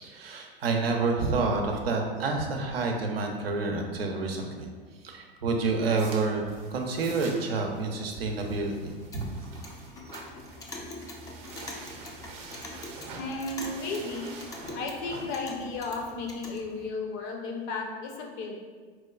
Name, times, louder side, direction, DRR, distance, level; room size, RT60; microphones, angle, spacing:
voice 1, 0.0-4.7 5.0-9.3, right 3 dB, 90° right, 2 dB, 0.5 m, -29 dB
sound 1, 5.5-16.9, right 3 dB, 45° right, 0.6 m, -47 dB
Clock, 8.9-16.6, left 2 dB, 10° left, 0.3 m, -43 dB
voice 2, 13.2-14.3 14.7-18.6, left 3 dB, 55° left, 1 dB, 0.6 m, -34 dB
4.2 x 2.2 x 2.3 m, 1.5 s
hypercardioid pair, 90°, 29 cm